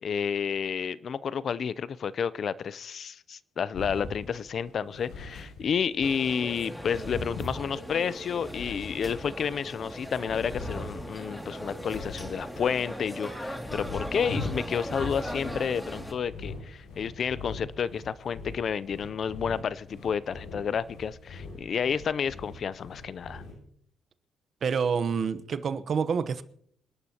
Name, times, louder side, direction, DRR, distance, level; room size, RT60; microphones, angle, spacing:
voice 1, 0.0-23.4, left 7 dB, 55° left, 0.5 m, -30 dB
sound 1, 3.7-6.1 6.5-9.5 9.9-13.0 13.4-23.5, left 3 dB, 85° left, 7.4 m, -41 dB
sound 2, 6.0-16.1, equal, 5° left, 2.4 m, -39 dB
voice 2, 24.6-26.4, right 6 dB, 55° right, 0.9 m, -27 dB
26.5 x 11.5 x 2.9 m
cardioid pair, 90°, 0 cm